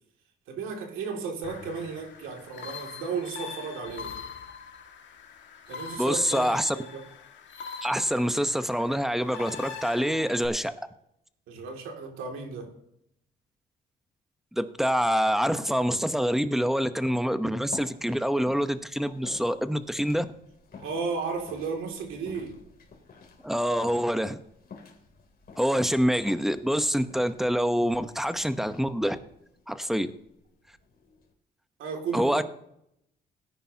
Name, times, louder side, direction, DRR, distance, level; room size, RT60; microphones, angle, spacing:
voice 1, 0.5-4.2 5.7-7.0 11.5-12.7 19.0-19.1 20.8-22.6 31.8-32.4, right 5 dB, 90° right, 2 dB, 2.4 m, -34 dB
sound 1, 1.4-10.5, left 6 dB, 70° left, 1.8 m, -42 dB
voice 2, 6.0-6.8 7.8-10.7 14.5-20.3 23.4-24.4 25.6-29.2 29.7-30.1 32.1-32.4, equal, ahead, 10 dB, 0.9 m, -26 dB
sound 2, 17.3-31.3, left 5 dB, 50° left, 2.9 m, -50 dB
17.5 x 10.0 x 2.8 m, 0.77 s
cardioid pair, 90°, 20 cm